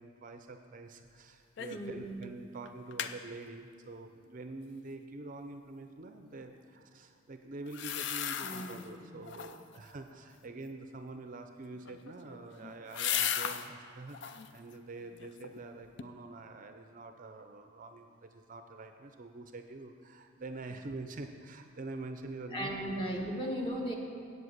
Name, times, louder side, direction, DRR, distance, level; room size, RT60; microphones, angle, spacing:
voice 1, 0.0-22.7, right 2 dB, 40° right, 6 dB, 0.5 m, -46 dB
sound 1, 1.6-1.9 2.2-2.3 2.7-3.2 7.7-8.9 9.2-9.8 11.7-13.7 14.1-14.5 15.0-15.6 16.0-16.1, left 9 dB, 55° left, 0.4 m, -36 dB
voice 2, 1.7-2.2 8.4-9.6 22.5-24.0, equal, 25° left, 0 dB, 1.3 m, -37 dB
7.9 x 7.7 x 8.0 m, 2.2 s
head